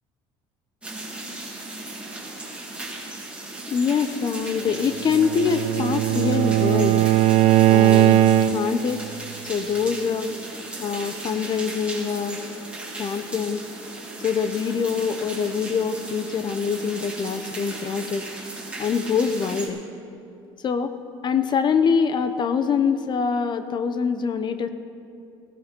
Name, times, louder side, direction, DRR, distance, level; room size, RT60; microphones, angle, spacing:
sound 1, 0.8-19.7, right 2 dB, 10° right, 2.6 m, -36 dB
voice 1, 3.7-7.1 7.7-8.2 8.5-9.1 9.4-10.3 10.8-12.4 13.0-13.7 14.2-18.2 18.8-19.8 20.6-20.9 21.2-24.7, left 6 dB, 40° left, 10 dB, 0.7 m, -24 dB
Bowed string instrument, 4.9-8.9, right 12 dB, 65° right, 0.5 m, -19 dB
15.5 x 15.0 x 4.4 m, 2.6 s
supercardioid pair, 110°, 12 cm